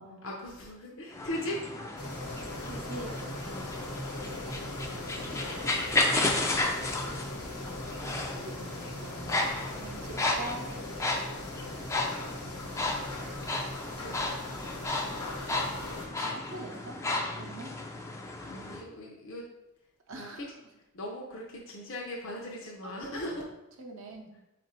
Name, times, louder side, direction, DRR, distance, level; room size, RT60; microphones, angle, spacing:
voice 1, 0.2-1.6 3.4-3.7 12.4-13.5 13.8-14.2 18.4-19.4 20.1-20.5 20.9-23.4, left 1 dB, 60° left, -2 dB, 0.6 m, -39 dB
sound 1, 1.1-18.8, left 2 dB, 15° left, 0.3 m, -33 dB
sound 2, 2.0-16.1, left 1 dB, 80° left, 1.1 m, -40 dB
voice 2, 2.7-3.2 4.1-4.4 4.7-5.1 6.9-7.5 8.0-10.7 15.5-15.8 16.1-17.0 17.3-17.7 20.1-20.5 22.8-23.2 23.8-24.3, right 2 dB, 60° right, 1 dB, 0.6 m, -45 dB
4.0 x 2.5 x 4.3 m, 0.93 s
head